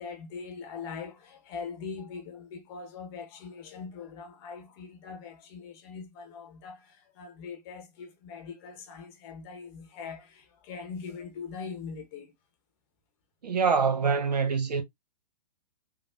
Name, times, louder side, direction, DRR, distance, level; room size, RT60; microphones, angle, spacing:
voice 1, 0.0-12.3, left 5 dB, 40° left, 0.8 m, -42 dB
voice 2, 13.4-14.8, right 5 dB, 85° right, 0.8 m, -25 dB
3.3 x 2.0 x 2.4 m
hypercardioid pair, 120°, 20 cm